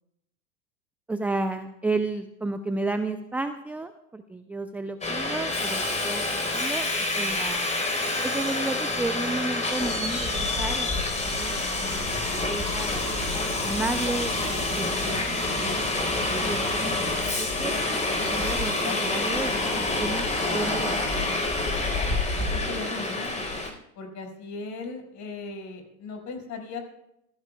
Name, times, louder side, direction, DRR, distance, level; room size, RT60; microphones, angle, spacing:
voice 1, 1.1-7.7 8.2-12.2 12.5-13.2 13.6-17.7 18.3-20.3 20.5-21.4, right 2 dB, 5° right, 8 dB, 0.4 m, -33 dB
Subway metro underground, 5.0-23.7, left 2 dB, 15° left, 4.0 m, -27 dB
voice 2, 22.4-23.4 24.0-26.8, left 4 dB, 40° left, 3 dB, 5.5 m, -37 dB
26.5 x 16.0 x 2.3 m, 0.82 s
hypercardioid pair, 100°, 45 cm